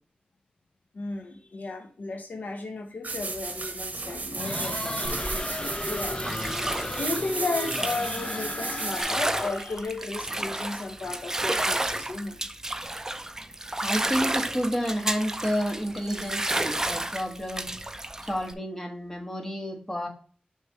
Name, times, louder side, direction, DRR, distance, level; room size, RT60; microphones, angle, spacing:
voice 1, 0.9-6.2 7.0-12.4, left 3 dB, 85° left, 0.9 m, -34 dB
sound 1, 3.0-9.0, right 3 dB, 65° right, 0.8 m, -34 dB
sound 2, 4.4-9.8, left 1 dB, 35° left, 0.7 m, -35 dB
Bathtub (filling or washing), 5.0-18.5, right 1 dB, 20° right, 0.4 m, -32 dB
voice 2, 13.8-17.7 18.2-20.1, equal, 15° left, 1.4 m, -30 dB
6.5 x 3.3 x 4.5 m
wide cardioid pair, 85°, 3 cm